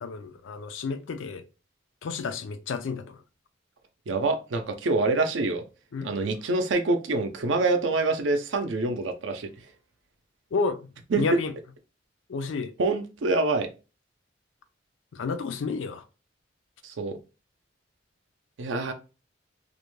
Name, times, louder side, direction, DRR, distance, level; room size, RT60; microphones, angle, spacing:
voice 1, 0.0-1.4 2.0-3.2 5.9-6.1 10.5-10.8 11.2-11.5 12.3-12.7 15.1-16.0, left 4 dB, 85° left, 0.4 m, -31 dB
voice 2, 4.1-5.6 6.0-9.5 11.1-11.2 12.8-13.7 16.8-17.2 18.6-18.9, right 3 dB, 75° right, 0.5 m, -26 dB
2.4 x 2.1 x 3.0 m
head